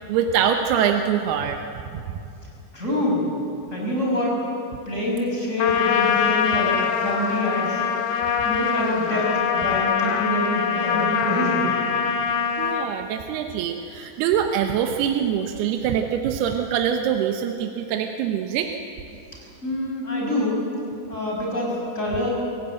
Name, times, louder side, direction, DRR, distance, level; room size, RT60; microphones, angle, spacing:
voice 1, 0.1-1.6 1.9-2.0 12.6-18.7, right 8 dB, 85° right, 4 dB, 3.0 m, -24 dB
voice 2, 2.7-3.3 3.7-4.4 4.9-7.8 8.4-11.7 19.6-20.6 21.1-22.3, left 1 dB, 20° left, -3 dB, 6.1 m, -25 dB
Trumpet, 5.6-12.9, left 7 dB, 90° left, 3.5 m, -23 dB
27.0 x 16.0 x 8.9 m, 2.7 s
omnidirectional pair, 4.5 m